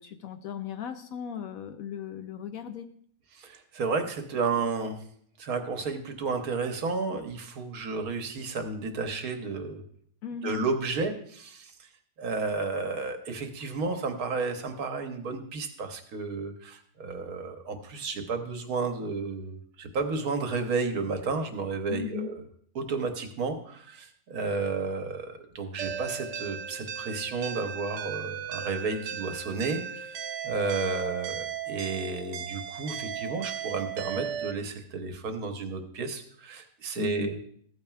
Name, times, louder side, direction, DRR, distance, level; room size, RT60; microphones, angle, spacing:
voice 1, 0.0-2.9 10.2-10.6 21.9-22.3 37.0-37.5, left 9 dB, 70° left, 8 dB, 0.9 m, -37 dB
voice 2, 3.3-5.0 5.4-9.8 10.4-11.9 12.2-22.4 22.7-30.2 30.4-37.4, right 4 dB, 65° right, 6 dB, 1.3 m, -32 dB
sound 1, 25.8-34.5, right 8 dB, 90° right, 1.3 m, -36 dB
14.0 x 8.8 x 2.3 m, 0.62 s
omnidirectional pair, 1.7 m